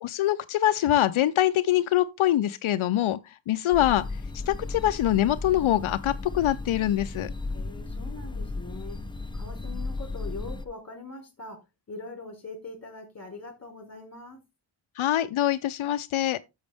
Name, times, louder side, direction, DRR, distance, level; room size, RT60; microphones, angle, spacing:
voice 1, 0.0-4.0 4.3-7.3 15.0-16.4, left 13 dB, 85° left, 0.6 m, -24 dB
sound 1, 3.7-10.6, left 3 dB, 10° left, 0.9 m, -35 dB
voice 2, 7.5-9.0 9.3-11.6 11.9-14.4, left 3 dB, 35° left, 4.1 m, -42 dB
10.5 x 7.2 x 3.4 m
wide cardioid pair, 85°, 47 cm